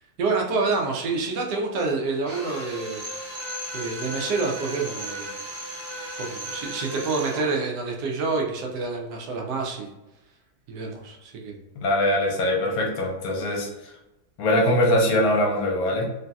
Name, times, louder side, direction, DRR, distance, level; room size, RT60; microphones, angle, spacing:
voice 1, 0.2-3.0 3.7-5.4 6.2-9.9 10.7-11.6, right 4 dB, 80° right, 1 dB, 1.2 m, -27 dB
Drill, 2.2-7.5, equal, 40° right, 0.5 m, -35 dB
voice 2, 11.8-13.7 14.4-16.1, left 1 dB, 70° left, -1 dB, 1.1 m, -22 dB
3.1 x 2.7 x 2.3 m, 0.97 s
omnidirectional pair, 1.8 m